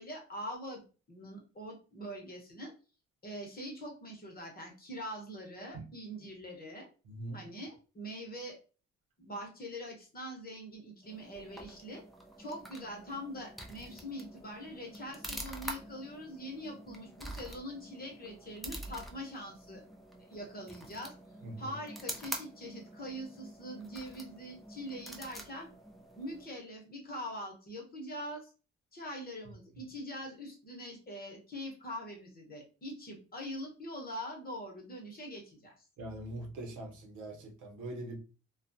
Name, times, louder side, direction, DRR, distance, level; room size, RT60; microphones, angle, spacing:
voice 1, 0.0-2.7 3.2-6.9 7.3-8.6 9.2-12.0 12.4-19.8 20.3-21.1 21.6-25.7 26.2-28.5 28.9-35.7, equal, 30° left, 1.0 m, -43 dB
voice 2, 7.1-7.4 21.4-21.7 36.0-38.2, right 1 dB, 80° right, 0.8 m, -42 dB
sound 1, 11.0-26.6, right 1 dB, ahead, 0.5 m, -47 dB
2.3 x 2.3 x 2.6 m
cardioid pair, 90°, 30 cm